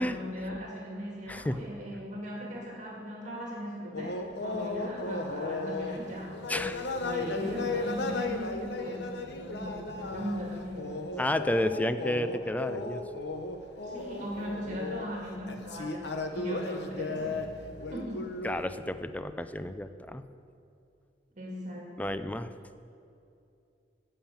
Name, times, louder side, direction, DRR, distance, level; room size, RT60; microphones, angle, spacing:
voice 1, 0.0-11.1 13.8-17.4 17.9-18.3 21.4-22.1, equal, 45° right, -2 dB, 2.0 m, -39 dB
voice 2, 1.3-1.6 6.5-7.1 11.2-13.0 18.4-20.2 22.0-22.5, left 1 dB, 10° left, 10 dB, 0.4 m, -31 dB
Fez-singing in the car, 3.9-18.6, left 3 dB, 65° left, 0.9 m, -35 dB
16.0 x 5.6 x 7.2 m, 2.6 s
head